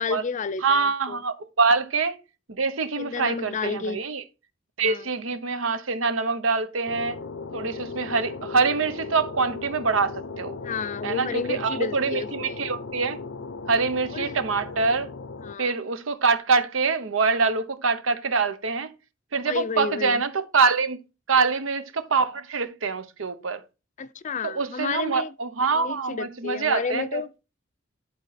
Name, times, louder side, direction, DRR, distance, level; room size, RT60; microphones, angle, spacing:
voice 1, 0.0-1.2 3.0-4.0 4.8-5.1 10.6-12.6 14.1-14.4 15.4-15.7 19.5-20.2 24.0-25.3 25.7-27.3, left 5 dB, 40° left, 0.5 m, -31 dB
voice 2, 0.6-2.2 2.5-4.2 4.8-7.2 7.5-10.6 11.0-13.2 13.7-15.1 15.6-18.9 19.3-21.0 21.3-23.6 24.4-27.2, right 4 dB, 80° right, 0.9 m, -25 dB
sound 1, 6.9-15.5, left 4 dB, 80° left, 0.7 m, -37 dB
11.0 x 4.3 x 4.2 m
head